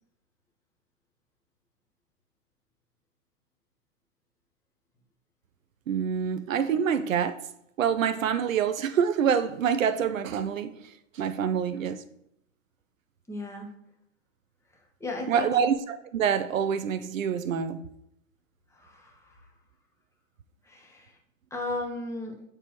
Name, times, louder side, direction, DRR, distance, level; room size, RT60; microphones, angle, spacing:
voice 1, 5.9-7.4 7.8-12.0 15.3-17.8, right 7 dB, 80° right, 0.6 m, -26 dB
voice 2, 13.3-13.7 15.0-15.5 18.8-19.1 20.7-21.1 21.5-22.3, left 2 dB, 5° left, 1.3 m, -35 dB
8.6 x 4.5 x 3.1 m
hypercardioid pair, 110°, 39 cm